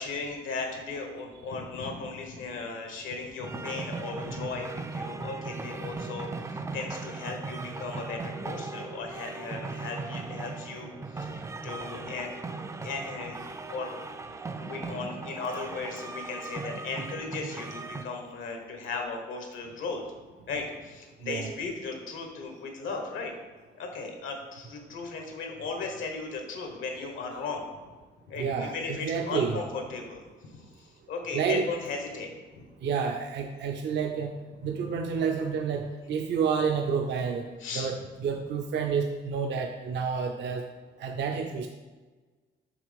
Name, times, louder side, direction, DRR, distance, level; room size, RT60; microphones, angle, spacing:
voice 1, 0.0-12.3 12.8-14.1 14.6-20.0 20.5-23.3 23.7-27.8 28.3-32.6 34.6-34.8 37.6-38.1, left 4 dB, 85° left, 3 dB, 1.3 m, -37 dB
sound 1, 3.4-18.0, right 3 dB, 15° right, 0.3 m, -38 dB
voice 2, 28.4-29.5 31.3-31.7 32.8-34.3 34.6-37.5 37.7-40.7 41.0-41.7, right 6 dB, 65° right, 3 dB, 0.5 m, -29 dB
6.2 x 3.4 x 5.1 m, 1.3 s
cardioid pair, 90°, 20 cm